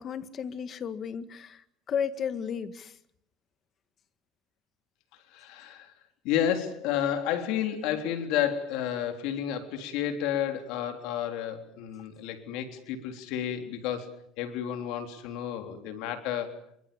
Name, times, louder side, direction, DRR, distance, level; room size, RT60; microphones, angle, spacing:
voice 1, 0.0-1.6 1.9-2.9, left 7 dB, 40° left, 11 dB, 1.8 m, -33 dB
voice 2, 5.3-5.9 6.2-14.1 14.4-16.6, left 10 dB, 75° left, 6 dB, 3.6 m, -31 dB
26.5 x 24.0 x 7.2 m, 0.72 s
cardioid pair, 135°, 0 cm